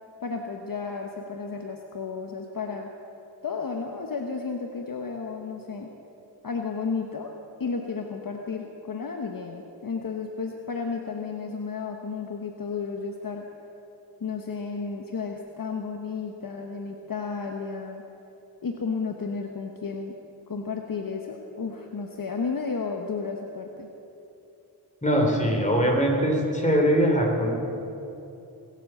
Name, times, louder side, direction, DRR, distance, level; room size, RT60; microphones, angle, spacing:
voice 1, 0.2-2.9 3.4-5.9 6.4-7.3 7.6-13.4 14.2-18.0 18.6-20.1 20.5-23.9, left 5 dB, 55° left, 2 dB, 1.2 m, -32 dB
voice 2, 25.0-27.5, equal, 20° left, 0 dB, 3.8 m, -22 dB
22.0 x 7.7 x 7.8 m, 2.9 s
cardioid pair, 55°, 40 cm